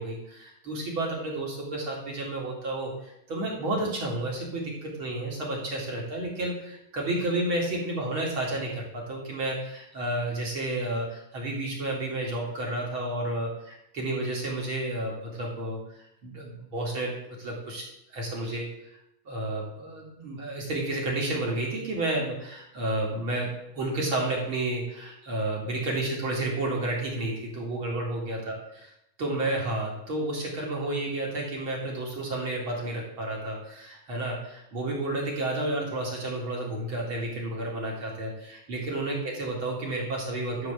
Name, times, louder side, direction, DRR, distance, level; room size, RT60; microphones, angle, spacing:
voice 1, 0.0-19.0 19.3-28.9 29.2-40.7, right 2 dB, 40° right, -2 dB, 2.7 m, -31 dB
12.0 x 4.6 x 7.0 m, 0.81 s
omnidirectional pair, 3.8 m